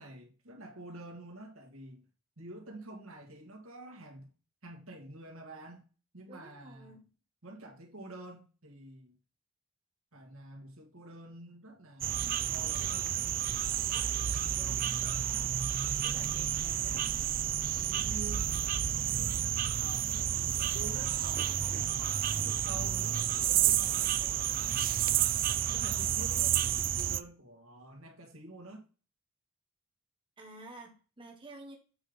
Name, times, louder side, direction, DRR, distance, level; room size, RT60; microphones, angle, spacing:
voice 1, 0.0-2.0 2.4-4.3 4.6-5.8 6.1-7.0 7.4-9.2 10.1-13.3 13.8-15.5 16.0-17.1 17.7-18.5 19.8-25.1 25.7-28.8, right 2 dB, 80° right, 2.2 m, -49 dB
voice 2, 6.3-7.0 30.4-31.8, right 2 dB, 25° right, 1.4 m, -50 dB
sound 1, 12.0-27.2, right 10 dB, 45° right, 0.4 m, -30 dB
8.2 x 4.0 x 5.3 m
head